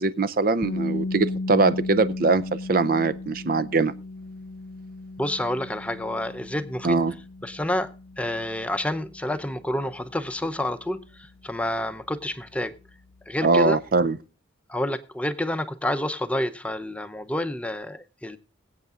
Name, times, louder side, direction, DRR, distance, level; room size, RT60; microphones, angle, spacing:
voice 1, 0.0-2.4 2.7-3.9 6.8-7.1 13.4-14.2, right 3 dB, 50° right, 0.5 m, -22 dB
sound 1, 0.6-12.5, left 2 dB, 55° left, 0.5 m, -36 dB
voice 2, 5.2-7.0 7.4-7.9 8.2-12.7 13.3-13.8 14.7-18.4, left 1 dB, 5° left, 0.6 m, -29 dB
22.5 x 8.2 x 2.4 m
head